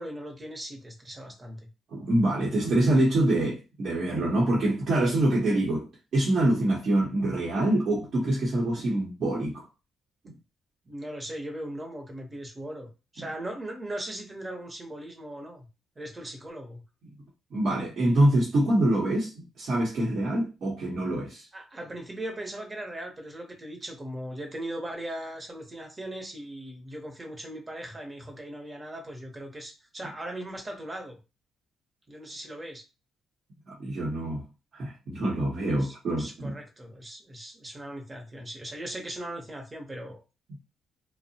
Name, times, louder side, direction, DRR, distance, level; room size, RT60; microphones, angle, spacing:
voice 1, 0.0-1.6 10.9-15.7 16.0-16.8 21.5-31.2 32.1-32.8 35.7-40.2, right 1 dB, 25° right, 0.8 m, -39 dB
voice 2, 1.9-5.9 6.1-9.6 10.2-10.3 17.5-21.4 33.7-34.4 34.7-36.5, right 1 dB, 60° right, 0.8 m, -25 dB
2.6 x 2.0 x 2.7 m
cardioid pair, 90°, 0 cm